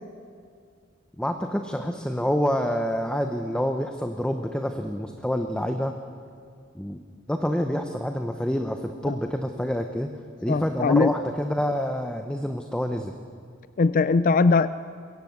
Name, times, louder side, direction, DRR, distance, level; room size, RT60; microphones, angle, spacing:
voice 1, 1.2-5.9 6.7-7.0 7.3-10.1 10.4-13.1, equal, 5° left, 6 dB, 0.8 m, -27 dB
voice 2, 10.5-11.1 13.8-14.7, left 4 dB, 40° left, 14 dB, 0.4 m, -20 dB
22.0 x 16.5 x 8.1 m, 2.2 s
head